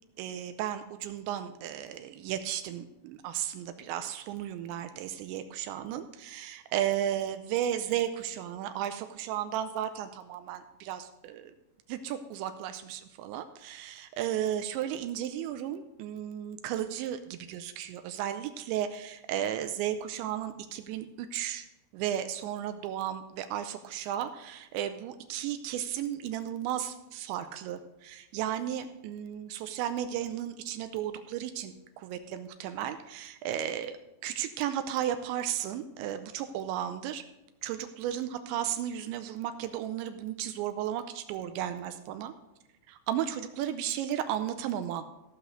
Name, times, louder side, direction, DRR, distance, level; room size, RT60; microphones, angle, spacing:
voice 1, 0.2-11.5 11.9-21.7 21.9-34.0 34.2-37.2 37.6-42.3 42.9-45.1, right 10 dB, 85° right, 9 dB, 2.9 m, -34 dB
17.0 x 6.0 x 5.1 m, 0.92 s
omnidirectional pair, 5.2 m